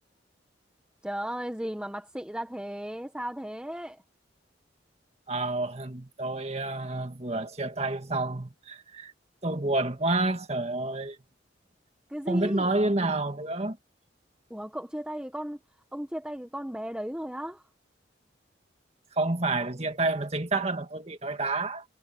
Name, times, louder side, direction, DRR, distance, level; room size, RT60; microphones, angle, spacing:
voice 1, 1.0-4.0 12.1-12.7 14.5-15.6 15.9-17.6, equal, 5° right, 1.2 m, -35 dB
voice 2, 5.3-9.1 9.4-11.2 12.3-13.8 19.1-21.8, right 2 dB, 35° right, 2.0 m, -29 dB
head